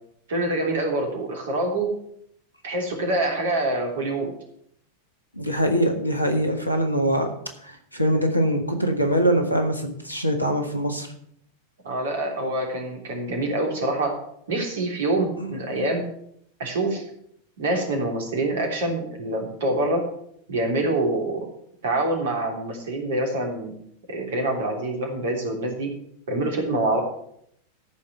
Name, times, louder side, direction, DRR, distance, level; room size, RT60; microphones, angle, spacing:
voice 1, 0.3-1.9 2.6-4.3 11.8-14.2 14.5-16.1 16.6-17.0 17.6-20.0 20.5-21.4 21.8-23.7 24.1-25.9 26.3-27.0, right 2 dB, 60° right, 2 dB, 3.3 m, -25 dB
voice 2, 5.4-7.3 7.6-11.1 15.4-15.9, equal, 85° left, 5 dB, 1.8 m, -23 dB
13.5 x 5.3 x 7.9 m, 0.70 s
figure-of-eight pair, 90°, 0 cm